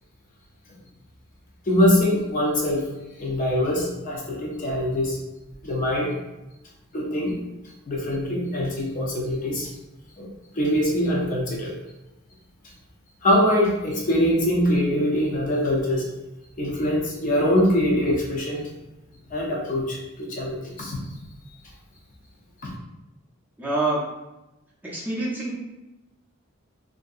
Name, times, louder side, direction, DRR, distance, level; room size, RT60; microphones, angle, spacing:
voice 1, 1.7-2.9 3.2-5.2 5.6-6.1 6.9-7.4 7.9-9.7 10.2-10.3 10.5-11.7 13.2-16.1 16.6-18.6 19.3-21.0 22.6-22.7, left 1 dB, 40° left, -2 dB, 0.5 m, -23 dB
voice 2, 23.6-24.1 24.8-25.6, right 2 dB, 10° right, -6 dB, 0.5 m, -26 dB
2.8 x 2.6 x 2.4 m, 0.98 s
head